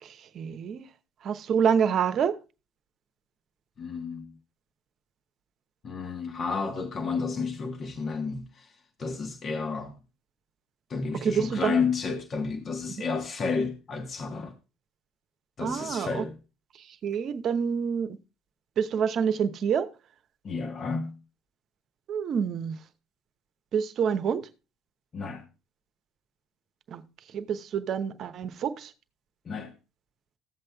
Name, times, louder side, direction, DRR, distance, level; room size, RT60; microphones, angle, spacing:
voice 1, 0.0-0.9 1.2-2.4 11.2-11.7 13.0-13.1 15.6-16.2 16.8-18.2 18.8-19.9 22.1-22.8 23.7-24.5 26.9-27.0 27.3-28.9, right 7 dB, 55° right, 0.9 m, -27 dB
voice 2, 3.8-4.3 5.8-10.0 10.9-14.5 15.6-16.3 20.4-21.1 25.1-25.4 29.4-29.7, left 4 dB, 45° left, 1.2 m, -31 dB
15.0 x 7.7 x 2.3 m
hypercardioid pair, 60°, 0 cm